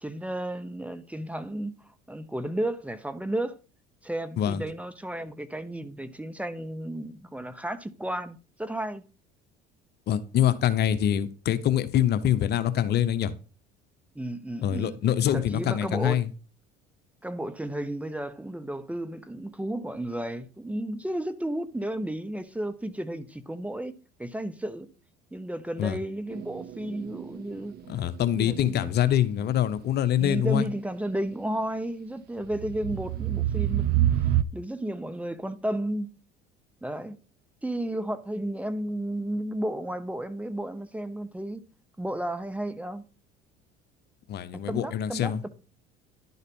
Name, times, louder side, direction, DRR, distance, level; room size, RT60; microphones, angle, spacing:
voice 1, 0.0-1.7 2.1-3.6 4.0-9.0 14.1-15.0 15.3-16.2 17.2-23.9 24.2-24.9 25.3-27.7 28.3-28.9 30.2-34.0 34.5-36.1 36.8-37.2 37.6-41.6 42.0-43.0 44.7-45.5, right 1 dB, 5° right, 0.9 m, -33 dB
voice 2, 10.1-13.3 14.6-16.3 25.8-26.0 27.9-30.7 44.3-45.4, left 10 dB, 55° left, 0.8 m, -25 dB
sound 1, 26.3-28.2 29.4-29.5 32.5-34.4, right 12 dB, 50° right, 0.6 m, -27 dB
11.0 x 4.1 x 5.3 m
supercardioid pair, 85°, 21 cm